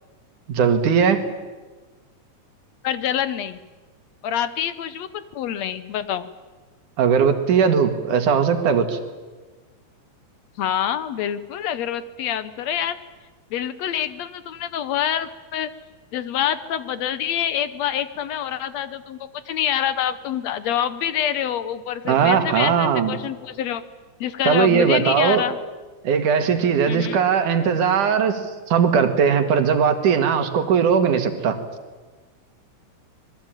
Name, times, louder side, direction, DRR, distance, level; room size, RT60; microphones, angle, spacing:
voice 1, 0.5-1.2 7.0-9.0 22.0-23.2 24.5-25.4 26.0-31.6, right 7 dB, 85° right, 8 dB, 3.4 m, -19 dB
voice 2, 2.8-3.6 4.2-5.1 5.4-6.3 10.6-13.0 13.5-15.7 16.1-23.8 24.2-25.6 26.9-27.2, left 10 dB, 70° left, 14 dB, 1.9 m, -26 dB
26.0 x 20.5 x 9.0 m, 1.3 s
omnidirectional pair, 3.5 m